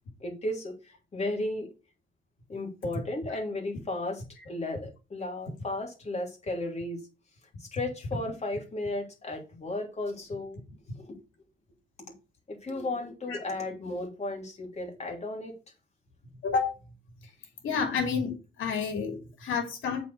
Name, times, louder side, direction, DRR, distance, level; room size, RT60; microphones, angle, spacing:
voice 1, 0.2-1.7 2.5-7.0 7.6-10.6 11.0-11.2 12.5-15.5, left 2 dB, 35° left, 1 dB, 3.1 m, -34 dB
voice 2, 17.6-20.0, left 5 dB, 80° left, 4 dB, 2.7 m, -29 dB
8.0 x 4.7 x 6.6 m, 0.32 s
cardioid pair, 90°, 20 cm